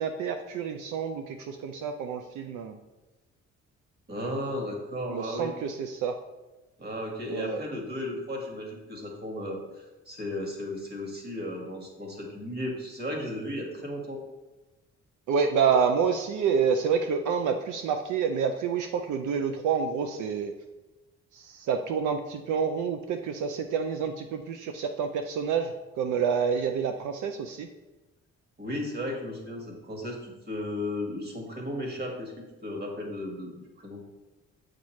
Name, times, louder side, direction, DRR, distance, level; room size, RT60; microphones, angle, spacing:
voice 1, 0.0-2.8 5.1-6.2 7.3-7.6 15.3-20.5 21.3-27.7, right 6 dB, 75° right, 6 dB, 0.5 m, -28 dB
voice 2, 4.1-5.5 6.8-14.2 28.6-32.3 32.6-34.0, left 1 dB, 30° right, 0 dB, 1.8 m, -35 dB
7.1 x 5.1 x 3.1 m, 1.1 s
cardioid pair, 90°, 30 cm